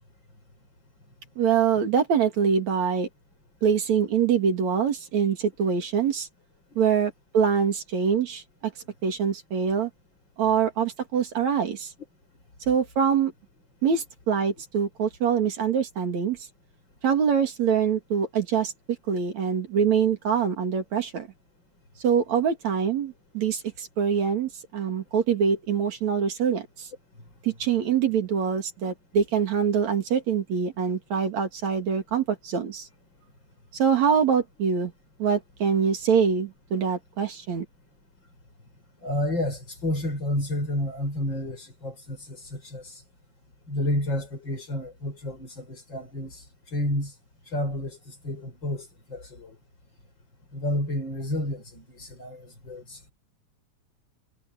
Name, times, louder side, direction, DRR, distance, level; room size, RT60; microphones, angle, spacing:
voice 1, 1.4-3.1 3.6-6.3 6.8-8.7 9.0-9.9 10.4-11.9 12.7-13.3 13.8-16.4 17.0-18.7 19.1-21.3 22.0-26.9 27.4-32.9 33.7-34.9 35.2-37.7, right 7 dB, 70° right, 3.7 m, -24 dB
voice 2, 39.0-43.0 43.7-46.4 46.7-47.1 47.5-49.6 50.5-53.1, left 1 dB, 35° left, 6.8 m, -30 dB
omnidirectional pair, 3.4 m